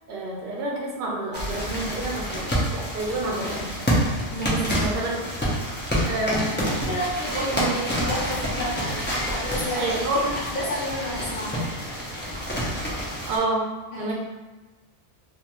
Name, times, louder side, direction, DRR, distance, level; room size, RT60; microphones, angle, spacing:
voice 1, 0.1-2.5 2.7-3.7 4.4-5.2 6.0-6.6 7.3-7.9 9.7-10.3 13.3-13.7 14.0-14.1, right 2 dB, 60° right, -2 dB, 0.8 m, -28 dB
sound 1, 1.3-13.4, equal, 15° left, 0.4 m, -28 dB
voice 2, 6.6-9.9 10.3-11.7 13.9-14.1, left 1 dB, 60° left, -8 dB, 0.7 m, -31 dB
2.5 x 2.3 x 2.9 m, 1.2 s
omnidirectional pair, 1.1 m